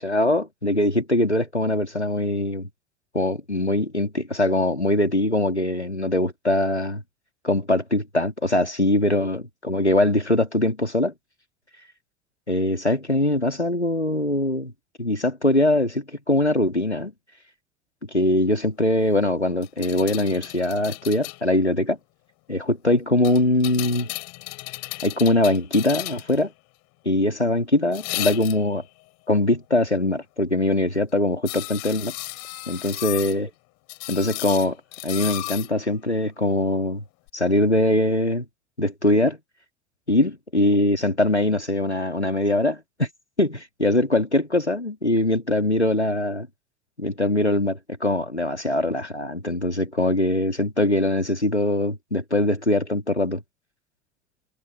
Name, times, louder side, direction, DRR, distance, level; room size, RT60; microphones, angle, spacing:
voice 1, 0.0-2.7 3.1-7.0 7.4-11.1 12.5-14.7 15.0-17.1 18.1-22.0 22.5-24.1 25.0-26.5 27.0-28.8 29.3-32.1 32.7-33.5 34.1-34.8 35.0-37.0 37.3-38.4 38.8-39.4 40.1-43.1 43.4-46.5 47.0-53.4, left 1 dB, 90° left, 2.7 m, -22 dB
sound 1, 19.6-21.4 23.2-26.4 27.9-28.8 31.5-33.4 33.9-35.7 37.3-37.4, left 29 dB, 55° left, 5.8 m, -34 dB
figure-of-eight pair, 65°, 33 cm